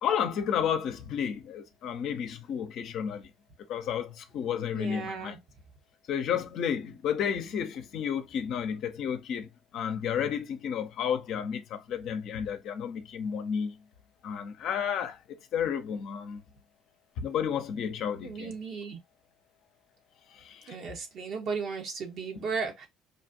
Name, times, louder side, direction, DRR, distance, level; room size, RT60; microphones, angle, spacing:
voice 1, 0.0-3.3 3.7-5.4 6.1-13.8 14.2-16.4 17.2-18.5 20.3-20.8, left 8 dB, 60° left, 0.7 m, -32 dB
voice 2, 4.7-5.4 18.2-19.0 20.7-22.9, right 5 dB, 60° right, 1.2 m, -35 dB
5.2 x 2.5 x 2.7 m
hypercardioid pair, 60°, 0 cm